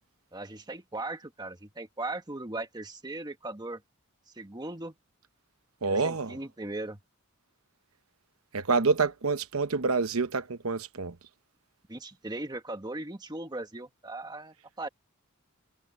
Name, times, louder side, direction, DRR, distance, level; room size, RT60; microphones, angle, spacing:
voice 1, 0.3-3.8 4.3-4.9 5.8-7.0 11.9-14.9, right 2 dB, 20° right, 1.4 m, -38 dB
voice 2, 5.8-6.4 8.5-11.1, right 4 dB, 85° right, 0.9 m, -27 dB
head